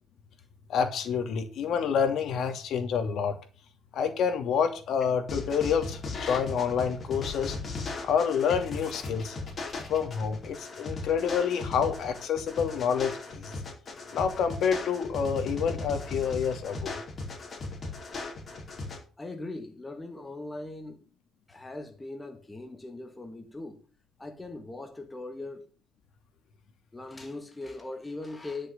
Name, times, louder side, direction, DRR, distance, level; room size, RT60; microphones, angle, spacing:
voice 1, 0.7-3.4 3.9-7.6 8.0-9.4 9.9-13.5 14.1-16.9, left 7 dB, 60° left, 2.7 m, -28 dB
sound 1, 5.3-19.0, left 3 dB, 30° left, 4.7 m, -37 dB
voice 2, 19.2-21.0 21.5-23.9 24.2-25.7 26.9-28.7, left 2 dB, 10° left, 1.8 m, -40 dB
11.5 x 6.7 x 6.9 m
cardioid pair, 135°, 0 cm